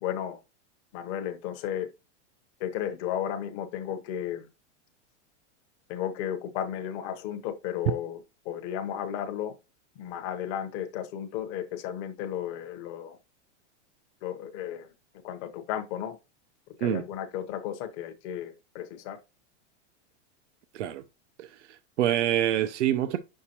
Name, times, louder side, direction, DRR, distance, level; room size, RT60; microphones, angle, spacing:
voice 1, 0.0-0.4 0.9-1.9 2.6-4.5 5.9-9.5 10.0-13.2 14.2-14.9 15.2-16.2 16.8-19.2, left 10 dB, 30° left, 0.8 m, -34 dB
voice 2, 21.4-23.2, right 11 dB, 75° right, 0.8 m, -26 dB
9.7 x 6.5 x 2.9 m
supercardioid pair, 175°, 35 cm